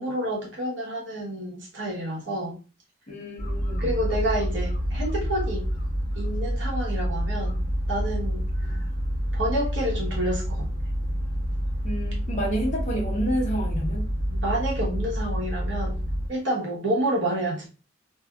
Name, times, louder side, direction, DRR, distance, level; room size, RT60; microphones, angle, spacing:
voice 1, 0.0-2.6 3.8-5.7 6.1-7.6 7.9-8.8 9.3-10.7 14.3-16.0 16.3-17.7, right 1 dB, 65° right, -3 dB, 1.1 m, -29 dB
voice 2, 3.1-3.9 8.7-8.8 11.8-14.1, equal, 40° left, -1 dB, 0.9 m, -29 dB
sound 1, 3.4-16.3, equal, 15° left, 1.1 m, -28 dB
2.7 x 2.6 x 2.3 m, 0.34 s
head